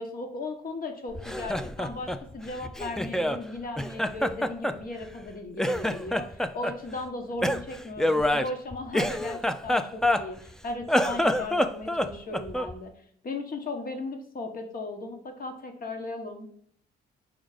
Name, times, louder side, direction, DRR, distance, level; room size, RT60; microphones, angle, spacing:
voice 1, 0.0-12.9 13.2-16.5, left 2 dB, 45° left, 5 dB, 1.4 m, -36 dB
Laughter, 1.1-3.4 3.8-5.3 5.6-6.8 7.4-10.5 10.8-12.8, left 1 dB, 5° left, 0.3 m, -27 dB
5.1 x 3.6 x 5.0 m, 0.63 s
cardioid pair, 90°, 20 cm